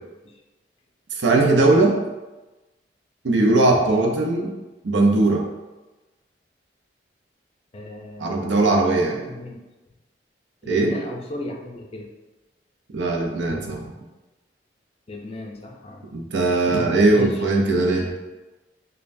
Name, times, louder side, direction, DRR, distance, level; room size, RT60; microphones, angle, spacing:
voice 1, 1.1-2.0 3.2-4.5 4.8-5.4 8.2-9.2 10.6-11.0 12.9-13.8 16.1-18.1, right 2 dB, 85° right, 1 dB, 0.6 m, -19 dB
voice 2, 7.7-9.6 10.6-12.1 15.1-16.1 17.1-17.4 17.7-18.1, left 1 dB, 35° left, 1 dB, 0.4 m, -36 dB
5.2 x 2.2 x 2.6 m, 1.1 s
head